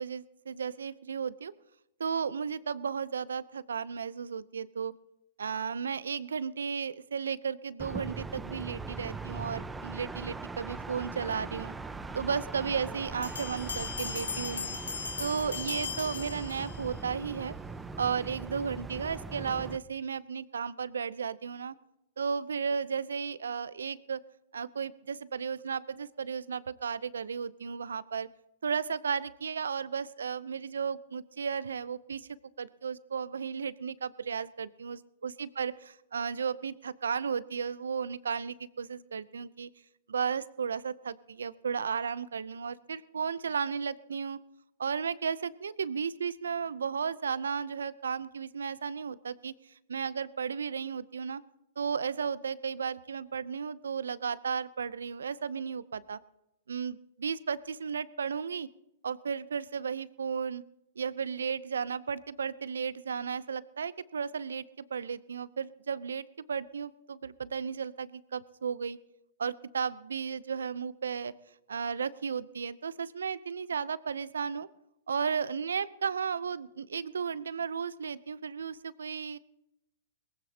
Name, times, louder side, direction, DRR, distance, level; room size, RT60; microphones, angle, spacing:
voice 1, 0.0-1.5 2.0-4.9 5.4-11.7 12.1-14.8 15.2-17.5 18.0-21.7 22.2-24.2 24.5-28.3 28.6-39.7 40.1-44.4 44.8-49.5 49.9-51.4 51.8-56.2 56.7-58.7 59.0-60.6 61.0-69.0 69.4-71.3 71.7-74.7 75.1-79.4, right 6 dB, 80° right, 18 dB, 0.6 m, -34 dB
sound 1, 7.8-19.8, right 3 dB, 10° right, 0.9 m, -41 dB
sound 2, 13.2-17.0, left 6 dB, 85° left, 1.8 m, -38 dB
21.5 x 15.5 x 2.9 m, 0.86 s
hypercardioid pair, 110°, 0 cm